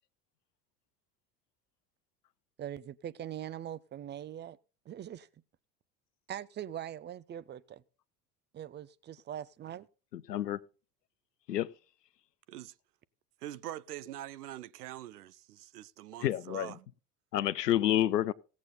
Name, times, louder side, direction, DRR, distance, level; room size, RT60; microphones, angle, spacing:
voice 1, 2.6-4.6 4.9-5.3 6.3-7.8 8.5-9.9, right 10 dB, 20° right, 0.6 m, -42 dB
voice 2, 10.1-10.6 11.5-11.7 16.2-16.7 17.3-18.3, left 12 dB, 80° left, 0.7 m, -29 dB
voice 3, 13.4-16.9, right 13 dB, 70° right, 0.7 m, -44 dB
16.5 x 8.3 x 4.0 m
figure-of-eight pair, 70°, 48 cm